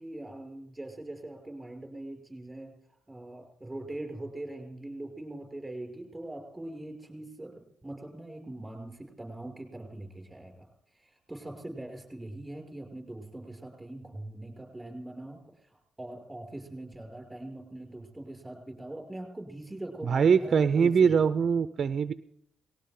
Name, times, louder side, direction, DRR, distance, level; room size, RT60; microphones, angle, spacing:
voice 1, 0.0-2.7 3.1-7.5 7.8-10.7 11.3-15.4 15.6-21.2, right 1 dB, 10° right, 2 dB, 5.9 m, -42 dB
voice 2, 20.0-22.1, right 6 dB, 45° right, 12 dB, 0.6 m, -23 dB
19.0 x 18.0 x 3.8 m, 0.72 s
cardioid pair, 90°, 0 cm